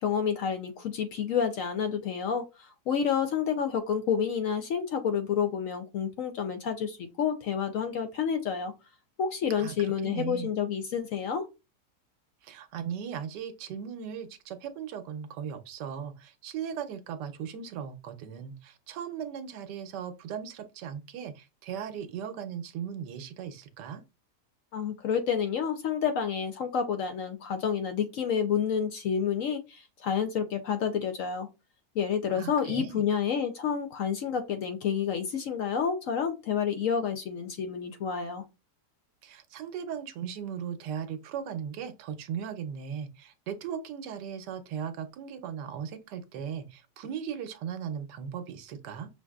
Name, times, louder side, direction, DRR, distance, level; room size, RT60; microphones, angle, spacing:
voice 1, 0.0-8.7 9.2-11.5 24.7-31.5 32.0-38.4, left 7 dB, 65° left, 0.8 m, -29 dB
voice 2, 9.6-10.5 12.4-24.0 32.3-33.0 39.2-49.1, right 8 dB, 90° right, 1.3 m, -38 dB
6.2 x 2.6 x 2.3 m
omnidirectional pair, 1.8 m